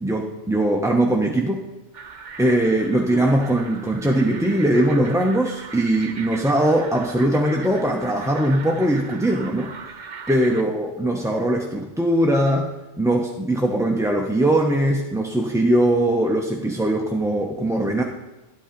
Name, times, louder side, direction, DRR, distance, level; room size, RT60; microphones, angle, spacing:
voice 1, 0.0-1.6 2.4-9.7 10.3-12.7 13.0-18.0, right 1 dB, 5° right, 0 dB, 0.6 m, -21 dB
sound 1, 1.9-10.6, right 5 dB, 45° right, 0.8 m, -39 dB
11.0 x 8.4 x 5.1 m, 1.1 s
omnidirectional pair, 1.3 m